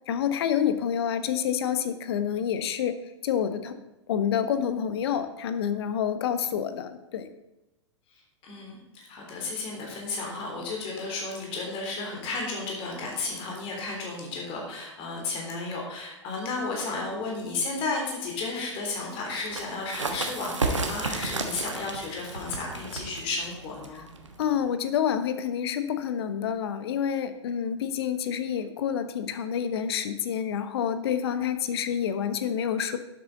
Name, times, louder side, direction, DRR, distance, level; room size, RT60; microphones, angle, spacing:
voice 1, 0.1-3.0 3.2-3.7 4.1-7.3 24.4-33.0, left 8 dB, 60° left, 11 dB, 1.0 m, -28 dB
voice 2, 8.1-24.0, left 3 dB, 35° left, -1 dB, 3.3 m, -33 dB
sound 1, 19.3-24.7, right 3 dB, 85° right, 1.3 m, -33 dB
11.5 x 7.7 x 4.0 m, 0.95 s
figure-of-eight pair, 105°, 15 cm